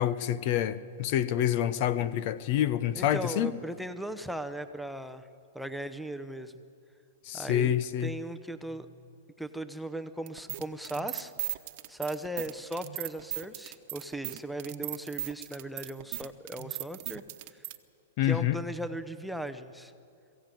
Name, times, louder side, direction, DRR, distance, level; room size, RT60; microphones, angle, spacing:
voice 1, 0.0-3.5 7.3-8.2 18.2-18.6, left 11 dB, 50° left, 0.8 m, -27 dB
voice 2, 3.0-5.3 5.5-6.5 7.3-7.7 8.0-8.9 9.4-11.3 11.9-17.2 18.2-19.9, right 1 dB, ahead, 0.8 m, -37 dB
sound 1, 10.3-17.8, right 17 dB, 50° right, 1.1 m, -37 dB
22.0 x 15.5 x 9.2 m
hypercardioid pair, 135°, 0 cm